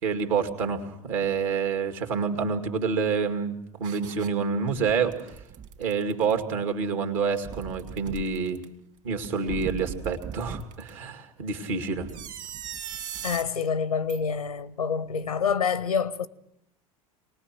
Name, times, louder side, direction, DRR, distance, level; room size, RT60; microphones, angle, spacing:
voice 1, 0.0-5.3 5.8-8.6 9.0-12.1, right 5 dB, 65° right, 2.2 m, -28 dB
sound 1, 3.8-4.3 4.7-6.4 7.2-8.7 9.2-10.9 12.0-13.5 14.1-14.2, right 9 dB, 40° right, 2.1 m, -39 dB
voice 2, 13.2-16.3, left 6 dB, 85° left, 0.7 m, -27 dB
26.0 x 19.5 x 5.9 m
figure-of-eight pair, 75°, 18 cm